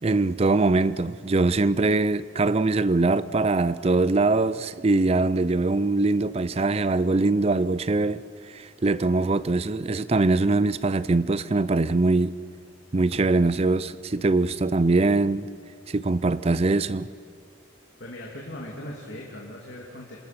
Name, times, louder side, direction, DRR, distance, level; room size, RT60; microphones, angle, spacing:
voice 1, 0.0-8.2 8.5-12.3 12.9-15.5 15.9-17.1, right 3 dB, 30° right, 0.4 m, -22 dB
voice 2, 18.0-20.2, left 1 dB, 60° left, 2.7 m, -39 dB
27.0 x 20.0 x 6.0 m
head